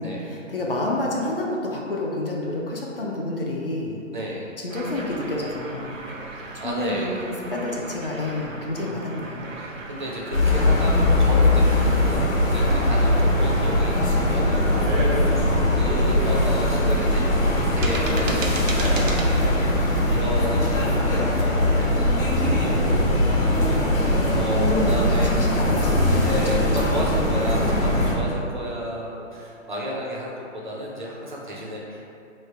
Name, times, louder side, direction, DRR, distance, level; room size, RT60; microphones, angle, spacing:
voice 1, 0.0-4.0 4.6-6.0 6.6-9.5 10.8-11.1 15.9-16.2 23.7-26.5 27.1-27.5, left 1 dB, 45° left, -2 dB, 0.5 m, -29 dB
voice 2, 4.1-4.5 6.6-7.2 9.5-20.8 21.1-25.5 26.1-32.0, equal, 40° right, -4 dB, 0.5 m, -32 dB
sound 1, 4.7-19.3, right 2 dB, 75° right, 0.8 m, -36 dB
sound 2, 10.3-28.1, left 1 dB, 90° left, 1.3 m, -21 dB
3.2 x 2.7 x 4.3 m, 2.6 s
hypercardioid pair, 170°, 39 cm